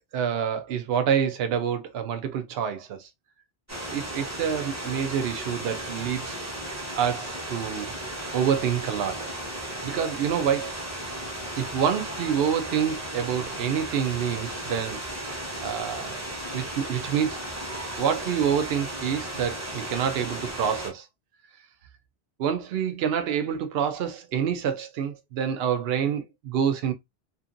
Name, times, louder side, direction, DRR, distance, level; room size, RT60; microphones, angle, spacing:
voice 1, 0.1-3.1 3.9-6.4 7.0-7.9 8.3-9.3 9.8-10.7 11.6-16.2 16.5-17.4 18.0-21.1 22.4-26.9, right 8 dB, 70° right, 0.8 m, -27 dB
sound 1, 3.7-20.9, right 1 dB, 15° right, 0.9 m, -35 dB
2.6 x 2.5 x 2.4 m
omnidirectional pair, 1.1 m